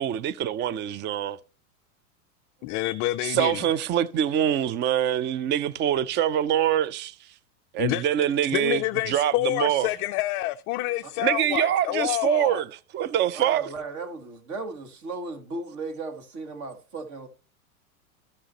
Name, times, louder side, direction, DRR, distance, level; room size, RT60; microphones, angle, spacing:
voice 1, 0.0-1.4 3.2-7.1 7.7-8.8 9.1-9.9 11.2-12.7 12.9-13.6, right 11 dB, 25° right, 0.5 m, -24 dB
voice 2, 2.6-3.7 7.8-8.0 8.5-12.6, left 17 dB, 30° left, 0.4 m, -28 dB
voice 3, 13.3-17.3, right 3 dB, 40° right, 2.7 m, -36 dB
14.5 x 6.3 x 2.9 m
hypercardioid pair, 115°, 43 cm